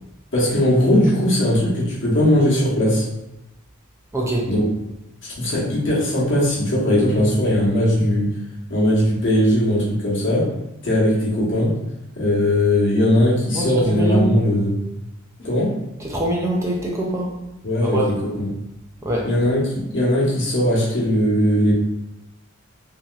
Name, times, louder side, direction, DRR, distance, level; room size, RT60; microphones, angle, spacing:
voice 1, 0.3-3.0 4.5-4.6 5.2-8.3 8.7-10.5 10.8-11.7 12.1-14.8 15.4-15.7 17.6-18.5 19.2-21.7, left 1 dB, 60° left, -6 dB, 1.0 m, -19 dB
voice 2, 4.1-4.5 13.5-14.3 16.0-17.3 17.8-18.1 19.0-19.3, right 1 dB, 15° right, -2 dB, 0.4 m, -24 dB
3.0 x 2.7 x 2.3 m, 0.94 s
head